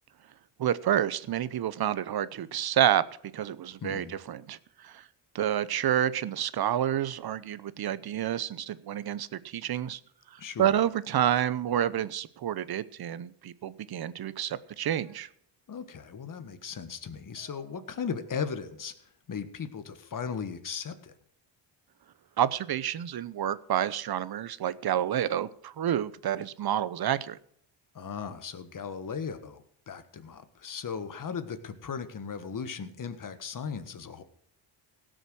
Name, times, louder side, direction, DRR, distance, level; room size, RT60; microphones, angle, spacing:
voice 1, 0.6-3.0 3.3-5.0 5.3-10.0 10.6-15.3 22.4-27.4, right 10 dB, 55° right, 17 dB, 0.8 m, -29 dB
voice 2, 3.8-4.2 10.4-10.7 15.7-18.9 19.3-21.1 27.9-34.2, left 6 dB, 45° left, 10 dB, 1.5 m, -37 dB
sound 1, 13.9-15.2 17.4-19.0, right 7 dB, 90° right, 3.1 m, -57 dB
17.0 x 6.5 x 6.3 m, 0.67 s
cardioid pair, 90°, 46 cm